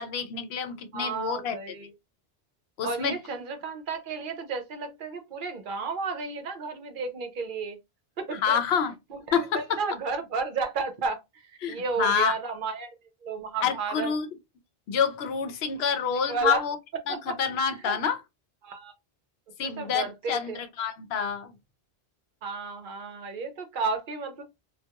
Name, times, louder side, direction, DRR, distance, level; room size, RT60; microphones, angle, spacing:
voice 1, 0.0-1.7 2.8-3.2 8.3-8.9 9.3-9.8 11.6-12.3 13.6-14.3 14.9-16.8 17.1-18.2 19.6-21.5, left 7 dB, 80° left, 0.8 m, -28 dB
voice 2, 0.9-1.9 2.8-7.8 8.2-8.6 9.1-11.2 11.7-12.9 13.2-14.1 16.3-16.6 17.1-17.3 17.9-18.0 18.6-18.9 19.6-20.6 22.4-24.4, right 4 dB, 60° right, 0.7 m, -32 dB
2.2 x 2.2 x 2.8 m
omnidirectional pair, 1.0 m